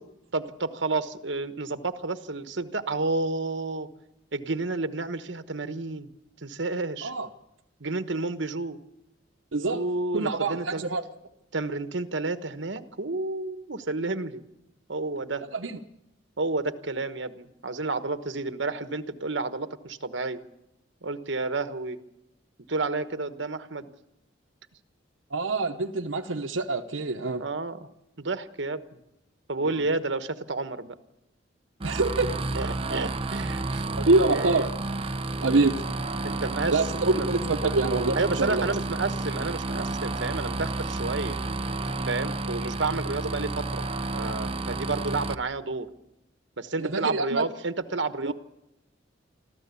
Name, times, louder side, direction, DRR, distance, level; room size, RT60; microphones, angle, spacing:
voice 1, 0.3-3.9 4.3-6.1 6.4-7.1 7.8-8.8 9.7-10.8 11.5-14.4 14.9-15.4 16.4-20.4 21.0-22.0 22.7-23.9 27.4-27.8 28.2-28.8 29.5-30.9 32.5-34.7 36.2-37.3 38.1-41.4 42.1-43.9 44.1-45.9 46.6-48.3, right 3 dB, 65° right, 10 dB, 1.2 m, -30 dB
voice 2, 9.5-9.8 10.1-11.0 15.5-15.8 25.3-27.4 31.8-32.4 34.0-35.0 35.4-35.8 36.7-38.7 46.8-47.5 48.2-48.3, right 3 dB, 85° right, 5 dB, 0.9 m, -25 dB
sound 1, 31.8-45.3, right 2 dB, 30° right, 0.7 m, -31 dB
25.5 x 14.5 x 8.3 m, 0.86 s
head